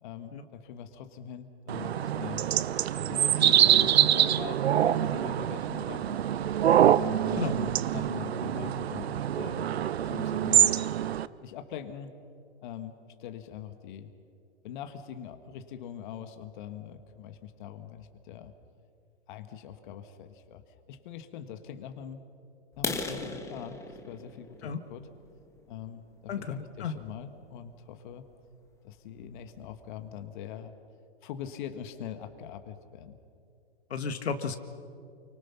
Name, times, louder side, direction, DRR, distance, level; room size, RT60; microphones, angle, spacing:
voice 1, 0.0-2.5 3.1-6.2 6.8-9.7 10.0-10.8 11.4-12.1 12.6-14.1 14.6-18.5 19.3-22.2 22.8-23.8 24.1-25.1 25.7-28.3 28.8-30.7 31.2-33.2, left 9 dB, 45° left, 8 dB, 1.6 m, -42 dB
sound 1, 1.7-11.3, right 10 dB, 70° right, 0.8 m, -25 dB
sound 2, 22.7-26.5 27.0-27.2 27.7-27.8 28.2-28.4 28.7-28.8 29.2-29.3 29.5-30.0, left 3 dB, 10° left, 1.6 m, -38 dB
voice 2, 26.3-27.0 33.9-34.6, left 6 dB, 70° left, 9 dB, 1.8 m, -33 dB
29.0 x 24.5 x 5.9 m, 2.5 s
hypercardioid pair, 130°, 33 cm